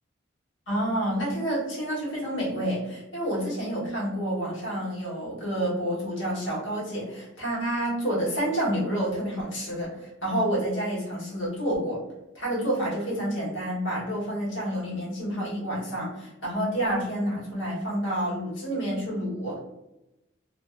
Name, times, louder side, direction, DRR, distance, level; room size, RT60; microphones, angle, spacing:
voice 1, 0.7-12.0 12.3-19.6, right 1 dB, 75° left, -5 dB, 1.1 m, -29 dB
2.5 x 2.2 x 2.4 m, 0.93 s
head